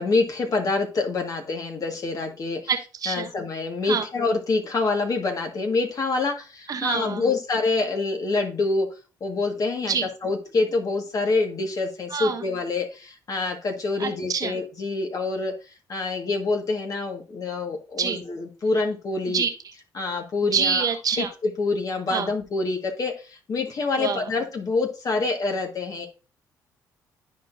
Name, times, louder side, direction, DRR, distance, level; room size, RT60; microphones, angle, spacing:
voice 1, 0.0-2.6 3.1-8.9 9.2-10.0 10.2-15.5 15.9-19.4 20.0-20.8 21.2-21.3 21.6-26.1, left 3 dB, 50° left, 3 dB, 1.8 m, -26 dB
voice 2, 2.7-3.3 3.8-4.1 6.7-7.3 9.8-10.1 12.1-12.4 14.0-14.6 18.0-18.2 19.3-19.5 20.4-21.3 22.1-22.3 24.0-24.3, right 6 dB, 50° right, 4 dB, 1.3 m, -26 dB
12.5 x 4.5 x 2.7 m, 0.33 s
supercardioid pair, 70°, 8 cm